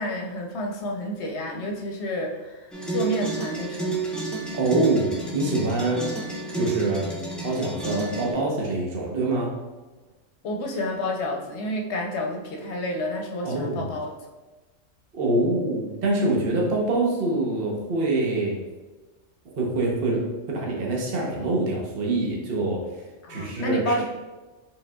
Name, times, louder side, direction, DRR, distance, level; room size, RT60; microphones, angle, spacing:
voice 1, 0.0-2.6 2.9-4.0 10.4-14.1 23.2-24.0, left 1 dB, 65° left, 1 dB, 0.9 m, -29 dB
sound 1, 2.7-8.3, right 3 dB, ahead, 0.4 m, -30 dB
voice 2, 4.5-6.1 6.5-7.1 7.4-9.6 13.4-13.9 15.1-18.6 19.6-22.8 23.3-23.9, right 2 dB, 55° right, -2 dB, 1.0 m, -25 dB
5.1 x 3.7 x 2.2 m, 1.2 s
omnidirectional pair, 1.3 m